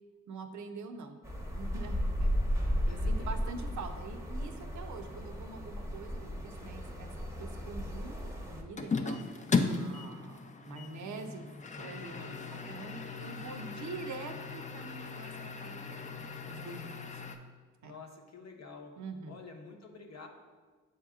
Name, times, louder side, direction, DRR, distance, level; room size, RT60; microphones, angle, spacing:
voice 1, 0.3-1.2 1.5-7.1 7.4-9.2 9.7-11.5 11.8-17.2 17.8-18.0 19.0-19.4, right 4 dB, 65° right, 5 dB, 0.6 m, -45 dB
sound 1, 1.2-8.6, equal, 10° right, 0.8 m, -34 dB
voice 2, 2.8-3.3 12.2-12.8 17.8-18.9 19.2-20.3, left 4 dB, 55° left, 3 dB, 0.8 m, -49 dB
sound 2, 8.8-17.4, left 4 dB, 25° left, 0.4 m, -37 dB
7.5 x 2.9 x 2.4 m, 1.4 s
supercardioid pair, 50°, 32 cm